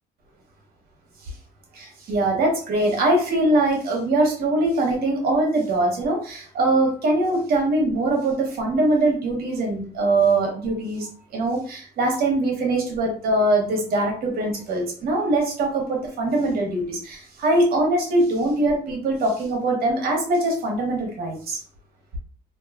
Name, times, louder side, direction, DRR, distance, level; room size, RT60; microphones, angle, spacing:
voice 1, 1.7-21.6, right 2 dB, 65° right, 1 dB, 1.0 m, -22 dB
2.5 x 2.3 x 2.4 m, 0.43 s
cardioid pair, 110°, 17 cm